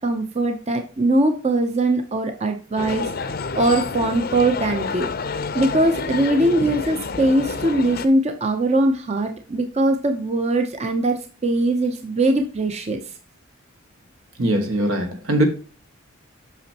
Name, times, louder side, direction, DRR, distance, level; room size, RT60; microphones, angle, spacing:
voice 1, 0.0-3.1 3.5-5.1 5.5-13.0, right 1 dB, 30° right, 0.6 m, -21 dB
sound 1, 2.8-8.1, left 4 dB, 45° left, 0.6 m, -29 dB
voice 2, 14.4-15.4, right 1 dB, 80° right, 1.7 m, -21 dB
8.2 x 6.1 x 2.9 m
head